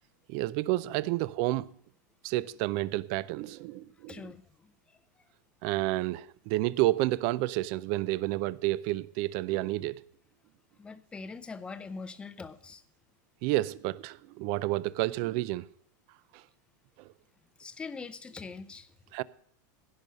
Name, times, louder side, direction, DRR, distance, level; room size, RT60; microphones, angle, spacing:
voice 1, 0.3-1.7 2.2-4.2 5.6-10.0 13.4-15.7 19.1-19.2, right 17 dB, 40° right, 0.4 m, -30 dB
voice 2, 4.1-5.0 10.8-12.8 17.6-18.9, left 4 dB, 10° left, 0.5 m, -43 dB
16.0 x 5.5 x 6.3 m
supercardioid pair, 160°, 11 cm